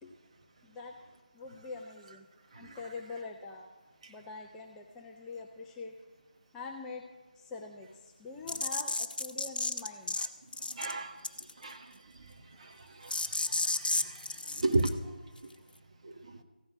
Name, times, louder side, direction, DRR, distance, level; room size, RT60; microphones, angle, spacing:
voice 1, 0.6-1.0 1.3-2.3 2.5-3.7 4.1-5.9 6.5-7.0 7.4-10.2, left 4 dB, 5° left, 0 dB, 0.4 m, -44 dB
sound 1, 8.5-10.3 10.5-10.9 11.2-11.6 13.1-14.9, left 2 dB, 65° left, 1.0 m, -32 dB
voice 2, 10.7-11.2 11.6-12.0 12.6-15.1 15.4-15.5 16.0-16.4, right 2 dB, 40° right, 5 dB, 1.1 m, -35 dB
15.0 x 5.7 x 9.9 m, 1.2 s
figure-of-eight pair, 165°, 5 cm